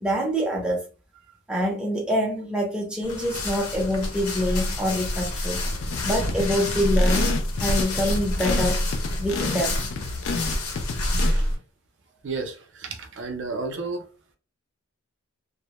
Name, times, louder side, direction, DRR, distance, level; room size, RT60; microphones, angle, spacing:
voice 1, 0.0-0.9 1.5-5.6 6.0-7.3 7.6-8.8 9.2-9.8, equal, 5° right, 0.5 m, -25 dB
sound 1, 3.0-11.6, left 1 dB, 80° left, 0.8 m, -27 dB
sound 2, 5.6-11.3, left 4 dB, 60° left, 0.3 m, -31 dB
voice 2, 11.1-11.5 12.2-14.1, right 3 dB, 55° right, 0.5 m, -32 dB
2.1 x 2.0 x 2.9 m
head